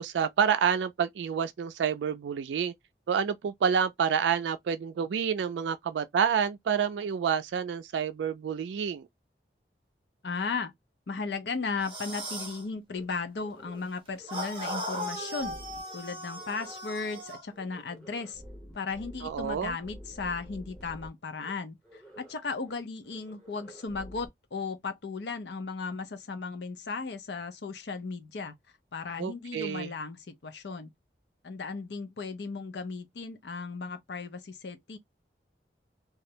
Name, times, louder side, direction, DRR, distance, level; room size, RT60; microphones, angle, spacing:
voice 1, 0.0-2.7 3.1-9.1 19.2-19.7 29.2-29.9, right 7 dB, 90° right, 0.3 m, -28 dB
voice 2, 10.2-10.7 11.1-15.6 15.9-18.4 18.7-28.5 28.9-30.9 31.4-35.0, left 4 dB, 75° left, 0.6 m, -36 dB
sound 1, 11.8-12.6 14.3-17.4, equal, 30° right, 0.5 m, -37 dB
sound 2, 12.9-13.0 13.4-13.9 14.1-14.3 14.6-16.0 16.3-16.8 17.1-17.2 17.5-21.1 21.4-21.5 21.8-22.3 22.6-22.7 23.0-24.3, equal, 5° left, 0.8 m, -49 dB
2.3 x 2.0 x 2.7 m
head